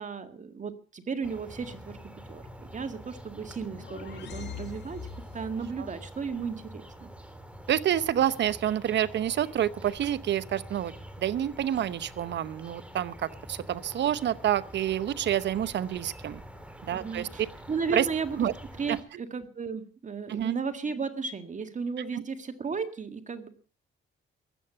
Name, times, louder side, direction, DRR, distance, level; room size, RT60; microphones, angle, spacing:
voice 1, 0.0-2.0 2.3-5.0 5.3-7.1 16.9-18.5 18.8-23.5, right 5 dB, 40° right, 8 dB, 1.9 m, -34 dB
sound 1, 1.2-19.0, equal, 5° right, 3.2 m, -46 dB
sound 2, 3.4-5.7, left 8 dB, 60° left, 2.0 m, -43 dB
voice 2, 7.7-16.4 16.8-17.3 17.9-18.0 18.4-18.5 18.9-19.0 20.3-20.5 22.1-22.2, right 11 dB, 65° right, 16 dB, 0.9 m, -28 dB
15.5 x 11.0 x 6.8 m, 0.41 s
cardioid pair, 90°, 20 cm